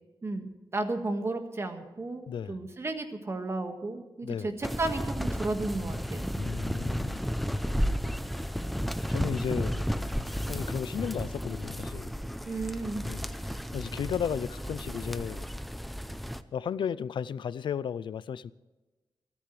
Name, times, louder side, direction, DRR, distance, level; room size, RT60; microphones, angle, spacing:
voice 1, 0.2-6.3 12.4-13.0, right 2 dB, 35° right, 1.7 m, -33 dB
voice 2, 2.3-2.6 4.2-4.5 6.3-7.3 9.1-9.9 10.5-12.1 13.1-15.5 16.5-18.5, left 8 dB, 90° left, 0.4 m, -34 dB
sound 1, 4.6-16.4, equal, ahead, 0.6 m, -33 dB
28.5 x 10.0 x 3.3 m
wide cardioid pair, 150°, 8 cm